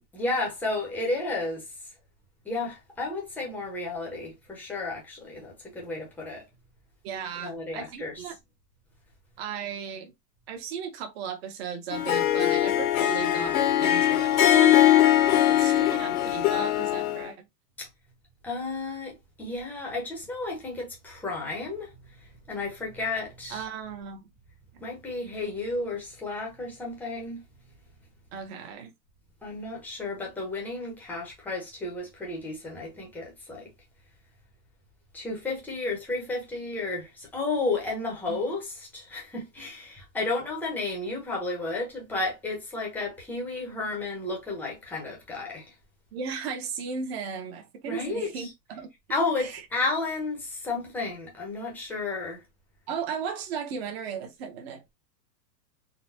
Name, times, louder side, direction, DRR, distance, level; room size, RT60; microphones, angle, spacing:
voice 1, 0.0-1.6 2.4-6.5 7.4-8.2 17.8-17.9 18.4-21.9 22.5-23.6 24.8-27.4 29.4-33.7 35.1-45.7 47.8-48.5 49.1-52.4, left 3 dB, 5° left, 0.8 m, -32 dB
voice 2, 7.0-8.4 9.4-10.1 10.5-14.8 15.5-17.4 23.5-24.2 24.7-24.8 28.3-28.9 38.3-38.4 46.1-48.9 49.4-49.6 52.9-54.8, right 7 dB, 40° right, 1.0 m, -36 dB
Harp, 11.9-17.2, left 12 dB, 60° left, 1.0 m, -21 dB
4.0 x 2.3 x 2.7 m
supercardioid pair, 155°, 49 cm